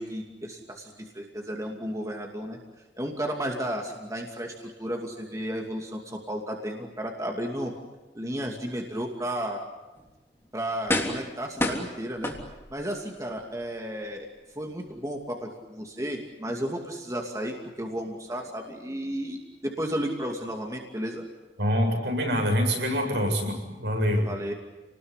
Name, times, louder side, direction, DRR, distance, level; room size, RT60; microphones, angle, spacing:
voice 1, 0.0-2.6 3.0-7.7 8.1-9.6 10.5-12.3 12.7-14.3 14.5-21.2 24.2-24.5, equal, 20° right, 1 dB, 2.6 m, -33 dB
sound 1, 10.0-10.1 10.9-11.3 11.6-12.8 13.4-13.5, left 1 dB, 15° left, 3.3 m, -28 dB
voice 2, 21.6-24.3, equal, 75° right, 2 dB, 7.9 m, -25 dB
29.5 x 20.0 x 9.9 m, 1.1 s
head